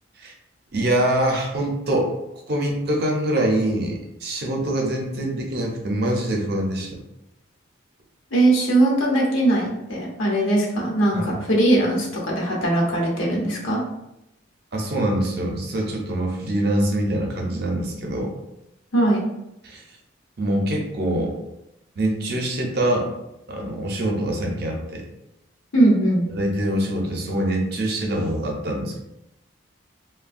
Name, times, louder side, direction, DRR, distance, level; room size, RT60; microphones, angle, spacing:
voice 1, 0.7-2.1 2.5-7.0 11.1-11.4 14.7-18.3 19.6-20.0 20.4-21.4 22.0-23.1 23.5-25.0 26.3-29.0, right 1 dB, 50° right, 0 dB, 0.6 m, -24 dB
voice 2, 8.3-13.8 18.9-19.2 25.7-26.3, right 1 dB, 85° left, -3 dB, 0.9 m, -20 dB
3.2 x 2.2 x 2.5 m, 0.87 s
head